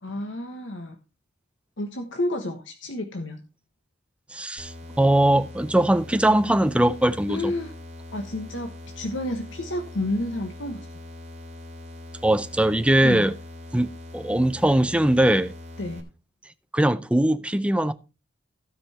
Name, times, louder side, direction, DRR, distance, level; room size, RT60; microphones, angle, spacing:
voice 1, 0.0-1.0 1.8-3.4 7.3-7.7 8.1-10.8 13.0-13.3 15.8-16.1, left 1 dB, 75° left, 1.3 m, -30 dB
voice 2, 4.3-7.5 12.2-13.3 13.7-15.5 16.7-17.9, right 1 dB, 5° right, 0.5 m, -21 dB
sound 1, 4.6-16.0, left 2 dB, 35° right, 2.6 m, -42 dB
16.0 x 5.3 x 4.3 m
head